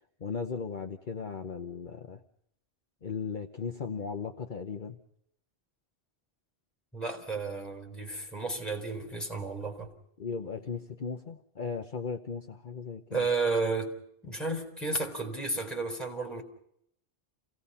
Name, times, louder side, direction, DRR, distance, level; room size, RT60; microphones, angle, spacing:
voice 1, 0.2-2.2 3.0-5.0 10.2-13.3, left 5 dB, 50° left, 1.1 m, -37 dB
voice 2, 6.9-9.9 13.1-14.0 14.2-16.4, right 3 dB, ahead, 4.0 m, -32 dB
28.5 x 17.5 x 5.6 m
omnidirectional pair, 1.1 m